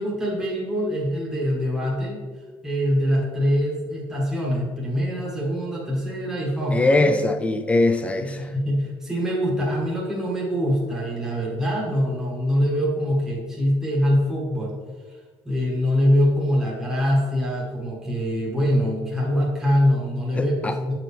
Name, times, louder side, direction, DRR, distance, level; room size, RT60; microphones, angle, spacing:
voice 1, 0.0-2.2 2.6-7.1 8.2-14.7 15.4-20.9, equal, 5° right, -4 dB, 1.5 m, -24 dB
voice 2, 6.7-8.5 20.3-20.8, left 2 dB, 15° left, 9 dB, 0.4 m, -21 dB
7.6 x 4.7 x 3.4 m, 1.4 s
cardioid pair, 150°, 9 cm